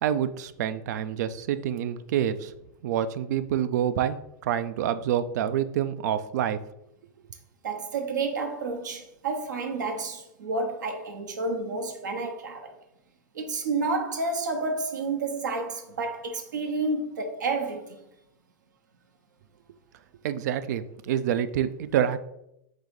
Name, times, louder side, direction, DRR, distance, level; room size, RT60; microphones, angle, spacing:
voice 1, 0.0-2.5 2.8-4.2 4.4-6.6 20.2-22.2, right 10 dB, 70° right, 0.4 m, -27 dB
voice 2, 7.6-12.7 13.3-18.0, right 3 dB, 85° right, 0.8 m, -30 dB
4.0 x 2.7 x 4.7 m
hypercardioid pair, 110°, 10 cm